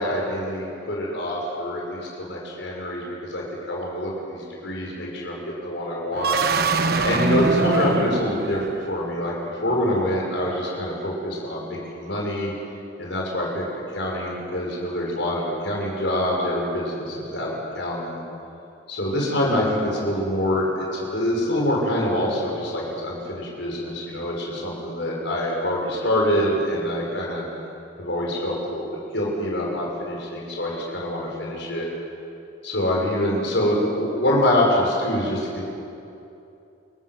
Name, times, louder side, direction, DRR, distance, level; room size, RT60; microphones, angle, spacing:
voice 1, 0.0-6.4 7.0-8.6 8.9-12.5 13.0-13.6 13.9-18.2 18.9-27.4 28.0-28.8 29.1-31.9 32.6-35.7, left 1 dB, 70° left, -3 dB, 6.3 m, -25 dB
sound 1, 6.1-9.1, right 3 dB, 55° right, 1.3 m, -23 dB
28.0 x 20.5 x 7.8 m, 2.7 s
head